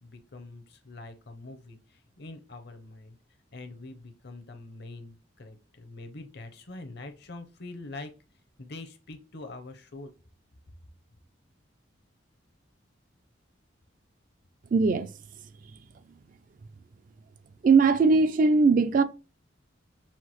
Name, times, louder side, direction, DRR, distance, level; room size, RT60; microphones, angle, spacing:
voice 1, 0.0-3.2 3.5-8.1 8.6-10.1, left 2 dB, 55° left, 0.8 m, -44 dB
voice 2, 14.7-15.1 17.6-19.0, right 4 dB, 45° right, 0.3 m, -20 dB
5.7 x 2.6 x 3.0 m
head